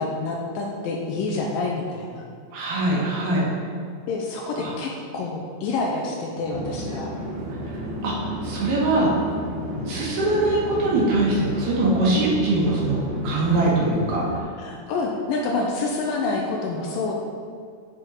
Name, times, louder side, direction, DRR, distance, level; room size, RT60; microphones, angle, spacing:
voice 1, 0.0-2.2 4.1-7.1 9.8-9.9 14.6-17.1, left 3 dB, 80° left, -1 dB, 2.2 m, -27 dB
voice 2, 2.5-3.4 4.6-4.7 8.0-8.1 8.4-9.1 9.9-14.2, right 2 dB, 85° right, -6 dB, 3.6 m, -22 dB
Conversation / Chatter / Fixed-wing aircraft airplane, 6.4-14.4, right 1 dB, 65° right, 2.2 m, -32 dB
8.4 x 4.8 x 4.5 m, 2.1 s
omnidirectional pair, 4.3 m